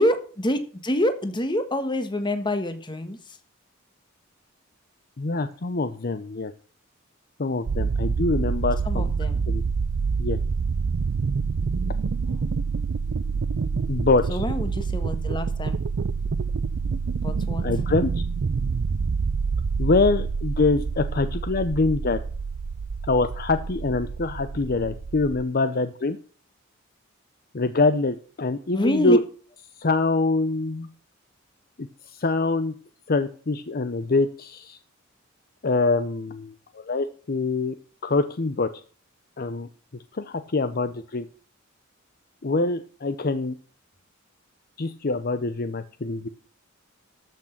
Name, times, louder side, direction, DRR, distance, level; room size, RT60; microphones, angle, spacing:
voice 1, 0.0-3.2 8.8-9.4 12.2-12.5 14.3-15.8 17.2-17.6 28.7-29.2, left 1 dB, 25° left, 9 dB, 1.4 m, -26 dB
voice 2, 5.2-6.5 7.4-9.1 9.5-9.6 10.2-10.4 13.9-14.4 17.6-18.1 19.8-22.2 23.1-26.2 27.5-29.2 29.8-30.9 31.8-32.7 33.1-34.8 35.6-37.7 38.0-38.7 39.4-39.7 40.1-41.3 42.4-43.5 44.8-46.3, left 3 dB, 45° left, 11 dB, 0.7 m, -24 dB
sound 1, 7.7-25.4, right 5 dB, 65° right, 0.5 m, -27 dB
13.5 x 6.2 x 5.8 m, 0.42 s
head